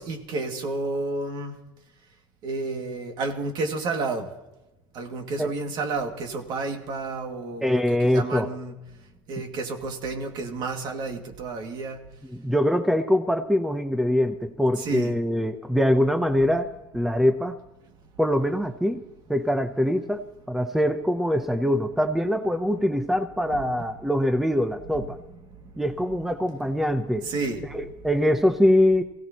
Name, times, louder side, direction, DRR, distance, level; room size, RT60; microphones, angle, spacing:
voice 1, 0.0-1.6 2.4-4.3 4.9-8.7 9.3-12.0 14.8-15.1 25.6-25.7 27.2-27.6, right 3 dB, 55° right, 5 dB, 2.3 m, -31 dB
voice 2, 7.6-8.5 12.3-16.7 16.9-17.6 18.2-19.0 19.3-25.2 25.8-27.3 27.7-29.0, left 1 dB, 5° right, 8 dB, 0.8 m, -23 dB
23.5 x 16.5 x 3.0 m, 0.99 s
supercardioid pair, 120°, 9 cm